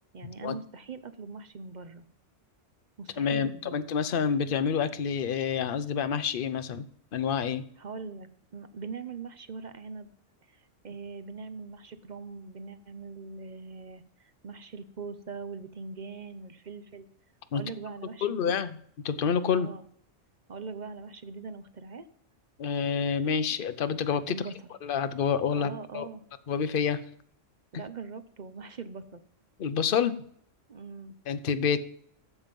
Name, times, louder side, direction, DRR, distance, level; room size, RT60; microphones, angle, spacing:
voice 1, 0.1-2.0 3.0-3.8 7.8-10.1 10.5-17.1 17.5-18.6 19.5-19.9 20.5-22.1 24.3-24.5 25.5-26.2 27.7-29.2 30.7-31.2, right 4 dB, 45° right, 11 dB, 0.7 m, -41 dB
voice 2, 3.2-6.8 7.1-7.6 17.5-17.6 18.2-18.8 19.0-19.7 22.6-24.4 24.8-26.1 26.5-27.0 29.6-30.1 31.3-31.8, left 7 dB, 50° left, 12 dB, 0.9 m, -28 dB
13.0 x 7.3 x 5.3 m, 0.63 s
omnidirectional pair, 1.3 m